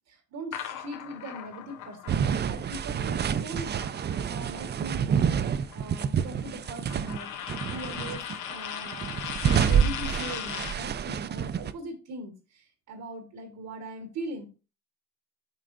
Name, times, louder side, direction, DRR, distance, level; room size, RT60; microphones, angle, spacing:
voice 1, 0.1-14.5, right 1 dB, 85° right, 4 dB, 1.3 m, -41 dB
sound 1, 0.5-4.6 4.9-10.9, left 9 dB, 85° left, 0.8 m, -39 dB
sound 2, 2.1-7.2 7.5-8.4 8.9-11.7, right 8 dB, 35° right, 0.4 m, -28 dB
7.7 x 4.9 x 2.5 m, 0.32 s
cardioid pair, 90°, 30 cm